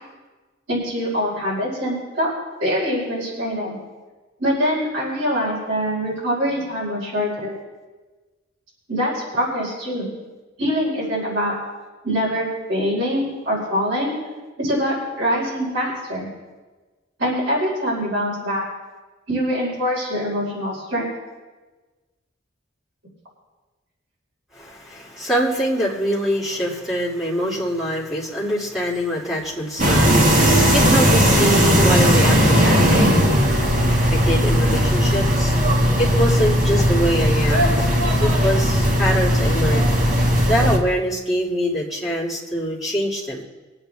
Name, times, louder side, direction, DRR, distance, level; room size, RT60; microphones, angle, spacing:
voice 1, 0.7-2.3 2.6-3.8 4.4-7.6 8.9-10.1 10.6-11.5 12.0-14.2 14.6-16.3 17.2-18.6 19.3-21.1, equal, 75° right, -6 dB, 4.7 m, -24 dB
voice 2, 24.5-33.4 34.1-35.5 36.0-37.8 38.2-40.0 40.5-43.4, equal, ahead, -7 dB, 2.5 m, -24 dB
sound 1, 29.8-40.8, equal, 40° right, 1.8 m, -17 dB
22.5 x 8.8 x 3.4 m, 1.3 s
head